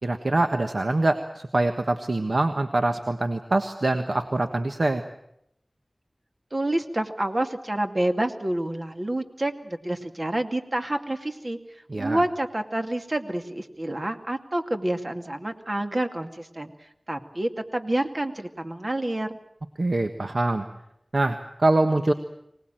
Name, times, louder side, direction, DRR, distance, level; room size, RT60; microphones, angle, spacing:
voice 1, 0.0-5.0 11.9-12.2 19.8-20.7 21.1-22.1, right 2 dB, 75° right, 7 dB, 1.4 m, -24 dB
voice 2, 6.5-11.6 12.0-16.7 17.1-19.4, right 1 dB, 50° right, 5 dB, 2.4 m, -28 dB
25.0 x 19.0 x 9.1 m, 0.77 s
wide cardioid pair, 45°, 0 cm